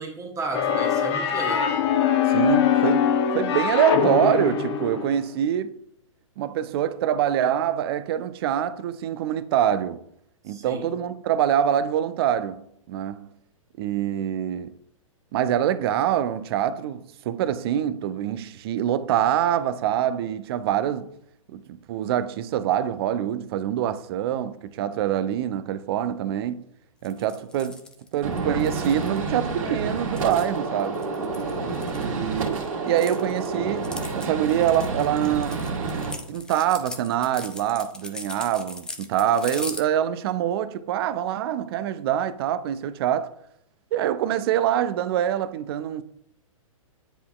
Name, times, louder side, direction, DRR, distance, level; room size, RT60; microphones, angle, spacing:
voice 1, 0.0-1.7 10.5-10.9, right 3 dB, 15° right, 1.0 m, -33 dB
sound 1, 0.5-5.3, left 8 dB, 50° left, 0.8 m, -22 dB
voice 2, 2.3-5.7 6.4-10.0 10.4-12.6 12.9-13.3 13.8-14.7 15.3-21.1 21.5-26.7 27.0-27.8 28.1-31.0 32.0-35.7 36.3-43.3 43.9-46.0, right 10 dB, 45° right, 0.4 m, -25 dB
sound 2, 27.0-29.2 30.0-32.4 32.7-39.8, left 2 dB, 5° left, 0.5 m, -39 dB
Gunshot gunfire, 28.2-36.1, right 3 dB, 70° right, 1.9 m, -29 dB
9.9 x 4.1 x 2.3 m
hypercardioid pair, 115°, 18 cm